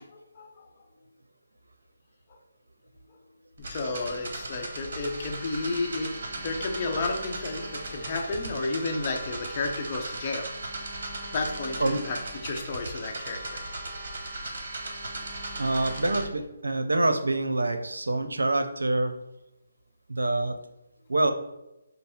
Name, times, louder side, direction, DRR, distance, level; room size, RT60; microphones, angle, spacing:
voice 1, 0.1-0.7 3.6-6.1 6.4-10.5 11.3-12.2 12.4-13.6, left 3 dB, 35° left, 1 dB, 0.7 m, -32 dB
sound 1, 3.6-16.2, right 2 dB, 55° right, 1.0 m, -37 dB
voice 2, 15.6-19.1 20.1-20.5 21.1-21.3, right 2 dB, 85° right, 7 dB, 0.6 m, -26 dB
5.4 x 2.0 x 4.3 m, 0.91 s
figure-of-eight pair, 150°, 0 cm